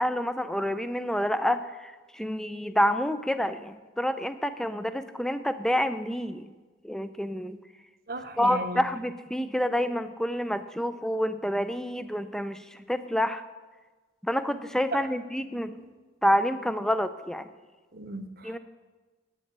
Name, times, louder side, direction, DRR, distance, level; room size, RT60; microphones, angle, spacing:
voice 1, 0.0-6.5 6.8-7.6 8.4-12.6 12.9-13.4 14.2-15.8 16.2-17.5 18.4-18.6, equal, 5° left, 11 dB, 0.4 m, -28 dB
voice 2, 8.1-8.8 14.9-15.0 17.9-18.6, right 2 dB, 50° right, 8 dB, 0.9 m, -35 dB
8.5 x 8.4 x 8.1 m, 1.3 s
head